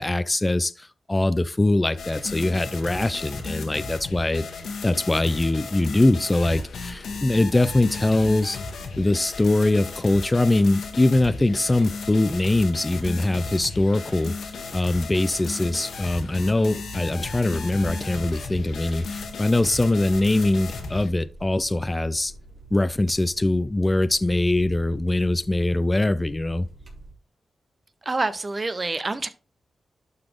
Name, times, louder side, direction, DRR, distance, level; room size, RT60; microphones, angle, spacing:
voice 1, 0.0-4.5 4.8-8.6 9.0-22.3 22.7-26.7, left 2 dB, 20° left, 0.4 m, -22 dB
sound 1, 2.0-21.1, left 4 dB, 80° left, 1.5 m, -35 dB
sound 2, 17.7-27.1, right 1 dB, 50° right, 3.7 m, -45 dB
voice 2, 28.0-29.3, right 3 dB, 30° right, 0.8 m, -27 dB
11.5 x 4.0 x 3.7 m
wide cardioid pair, 105°, 0 cm